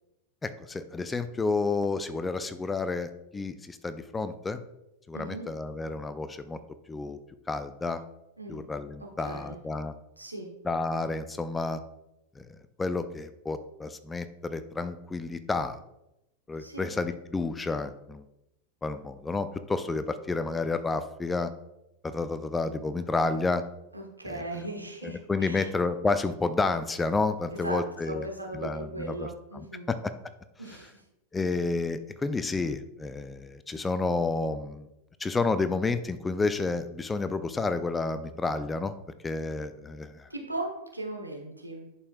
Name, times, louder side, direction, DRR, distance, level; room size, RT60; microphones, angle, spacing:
voice 1, 0.4-4.6 5.1-6.6 6.9-7.2 7.5-8.0 8.5-9.9 10.6-11.8 12.4-12.5 12.8-15.8 16.5-18.2 18.8-21.5 22.0-23.6 24.3-24.7 25.0-28.3 28.5-29.3 29.5-30.1 31.3-34.9 35.2-38.9 39.2-40.3, left 3 dB, 15° left, 12 dB, 0.4 m, -30 dB
voice 2, 5.1-5.5 8.4-8.6 9.2-9.5 10.2-10.5 16.6-16.9 23.9-25.7 27.6-27.8 28.1-29.9 30.6-31.0 40.3-41.9, right 2 dB, 85° right, 1 dB, 1.3 m, -37 dB
11.0 x 5.3 x 2.3 m, 0.88 s
figure-of-eight pair, 90°, 0 cm